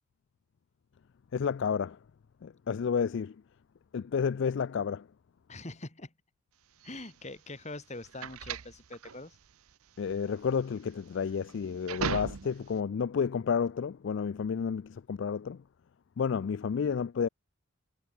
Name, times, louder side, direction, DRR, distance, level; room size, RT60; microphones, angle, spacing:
voice 1, 1.3-2.0 2.4-3.4 3.9-5.1 10.0-15.6 16.2-17.3, left 6 dB, 55° left, 0.3 m, -31 dB
voice 2, 5.5-6.1 6.8-9.4, left 2 dB, 30° left, 2.4 m, -43 dB
sound 1, 6.8-12.8, right 6 dB, 80° right, 0.7 m, -39 dB
head